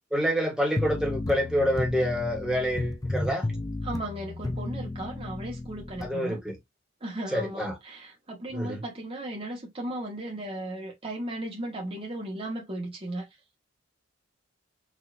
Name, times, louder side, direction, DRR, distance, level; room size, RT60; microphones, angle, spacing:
voice 1, 0.1-3.5 6.0-6.6 7.3-7.7 8.5-8.8, equal, 5° right, 1.4 m, -27 dB
sound 1, 0.8-6.1, left 2 dB, 20° left, 0.4 m, -33 dB
voice 2, 3.8-6.4 7.0-13.3, right 1 dB, 30° right, 1.2 m, -36 dB
5.0 x 2.8 x 2.5 m
head